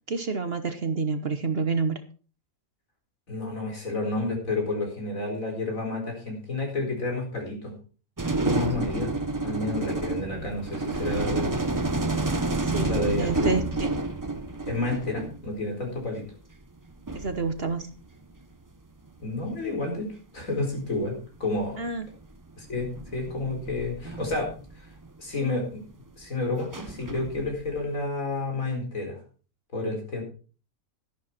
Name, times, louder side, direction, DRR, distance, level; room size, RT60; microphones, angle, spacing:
voice 1, 0.1-2.0 12.6-13.9 17.1-17.9 21.8-22.1, right 4 dB, 45° right, 10 dB, 1.1 m, -28 dB
voice 2, 3.3-7.7 8.3-9.1 9.4-11.7 12.8-13.5 14.7-16.2 19.2-20.1 20.3-21.8 22.6-24.9 25.2-25.8 26.2-29.2 29.7-30.2, left 2 dB, 65° left, 1 dB, 4.8 m, -30 dB
sound 1, 8.2-15.6 16.8-16.9 17.1-18.4 19.5-19.8 20.9-21.0 21.5-21.8 22.7-25.1 26.6-27.8, right 2 dB, 20° right, 0.6 m, -30 dB
12.5 x 11.0 x 4.4 m, 0.37 s
omnidirectional pair, 1.5 m